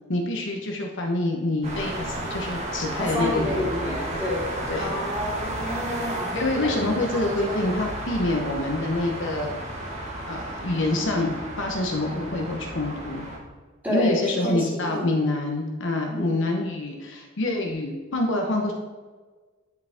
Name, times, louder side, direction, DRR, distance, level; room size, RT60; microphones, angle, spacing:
voice 1, 0.1-4.0 4.7-4.9 6.3-9.6 10.3-13.3 13.9-18.7, left 2 dB, 60° left, 2 dB, 1.0 m, -26 dB
sound 1, 1.6-13.4, right 1 dB, 35° right, 1.5 m, -33 dB
voice 2, 3.0-6.8 7.1-7.6 13.8-15.1 16.1-16.4, left 1 dB, 10° right, -6 dB, 2.5 m, -30 dB
10.5 x 5.2 x 3.6 m, 1.4 s
head